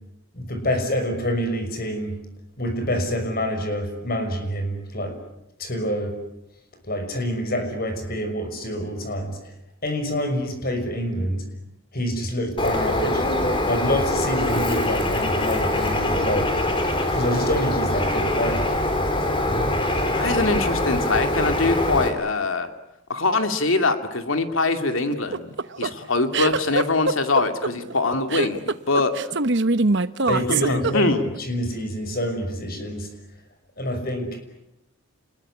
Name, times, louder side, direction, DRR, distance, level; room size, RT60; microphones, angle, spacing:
voice 1, 0.3-2.2 2.6-5.2 5.6-6.1 6.8-9.5 9.8-11.5 11.9-13.2 13.7-16.6 17.1-18.7 30.2-31.1 31.4-33.1 33.8-34.4, equal, 45° left, 7 dB, 6.2 m, -26 dB
Bird, 12.6-22.1, left 1 dB, 25° left, 3.7 m, -23 dB
voice 2, 20.1-22.7 23.1-25.5 25.8-29.1 30.6-31.2, left 3 dB, 70° left, 7 dB, 2.4 m, -23 dB
sound 1, 25.1-31.4, right 3 dB, 55° right, 1.0 m, -23 dB
29.0 x 21.0 x 9.8 m, 0.86 s
head